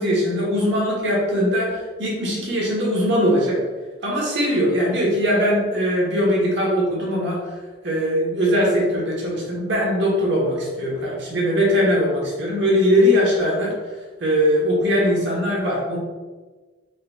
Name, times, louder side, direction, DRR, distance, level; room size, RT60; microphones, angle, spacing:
voice 1, 0.0-3.6 4.0-7.4 7.8-13.7 14.2-16.0, equal, 55° right, -4 dB, 1.2 m, -20 dB
4.0 x 3.8 x 2.3 m, 1.3 s
head